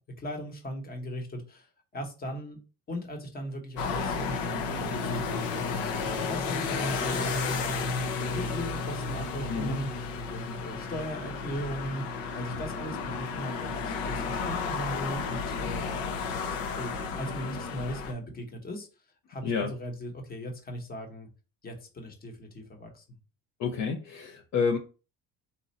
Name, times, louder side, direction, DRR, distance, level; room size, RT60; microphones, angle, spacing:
voice 1, 0.2-1.7 1.9-2.6 2.9-16.1 16.8-18.9 19.3-21.3 21.6-23.2, equal, 25° left, 1.1 m, -38 dB
sound 1, 3.8-18.1, left 4 dB, 85° left, 0.9 m, -32 dB
voice 2, 23.6-24.8, left 5 dB, 50° left, 0.7 m, -29 dB
4.2 x 2.6 x 4.0 m
cardioid pair, 150°, 35 cm